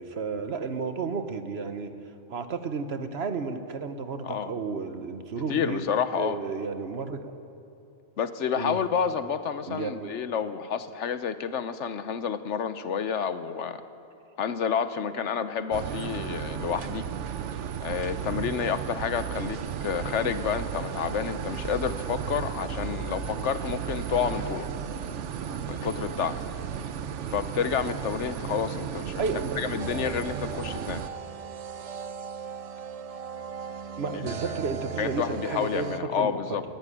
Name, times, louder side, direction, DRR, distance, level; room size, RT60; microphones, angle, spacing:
voice 1, 0.0-1.9 2.3-5.8 6.2-7.3 8.5-8.8 9.7-10.1 29.2-29.6 34.0-36.4, right 4 dB, 65° right, 9 dB, 1.3 m, -32 dB
voice 2, 5.5-6.4 8.2-13.8 14.4-17.0 17.8-24.7 25.6-26.4 27.3-29.2 29.6-31.0 34.1-34.3 35.0-36.6, left 7 dB, 80° left, 12 dB, 1.2 m, -29 dB
sound 1, 15.7-31.1, right 7 dB, 80° right, 1.1 m, -34 dB
sound 2, 29.8-36.0, right 7 dB, 50° right, 0.4 m, -38 dB
17.5 x 15.0 x 9.9 m, 2.7 s
omnidirectional pair, 1.2 m